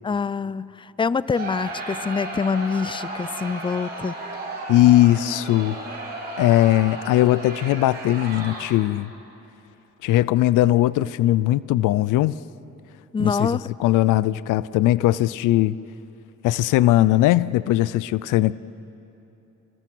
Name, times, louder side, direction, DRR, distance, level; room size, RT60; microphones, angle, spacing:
voice 1, 0.0-4.1 13.1-13.6, left 5 dB, 15° left, 0.4 m, -25 dB
Crowd, 1.3-9.0, right 2 dB, 30° right, 6.6 m, -34 dB
voice 2, 4.7-5.8 6.4-9.1 10.0-12.4 13.2-15.8 16.4-18.6, left 15 dB, 90° left, 0.5 m, -19 dB
27.0 x 21.0 x 6.2 m
cardioid pair, 90°, 30 cm